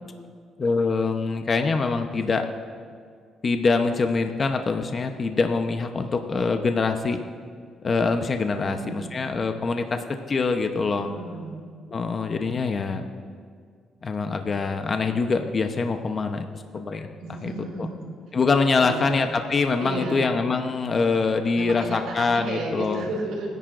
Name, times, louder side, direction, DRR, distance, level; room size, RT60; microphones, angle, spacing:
voice 1, 0.6-2.5 3.4-7.2 7.8-11.1 11.9-13.1 14.0-17.1 17.4-17.5 17.8-17.9 18.3-23.0, left 4 dB, 40° left, 6 dB, 0.8 m, -24 dB
voice 2, 8.6-9.2 11.0-11.6 17.2-18.1 18.8-19.2 19.8-20.3 21.6-23.5, right 2 dB, 85° right, -1 dB, 4.2 m, -33 dB
27.5 x 10.5 x 2.6 m, 2.1 s
cardioid pair, 90°, 0 cm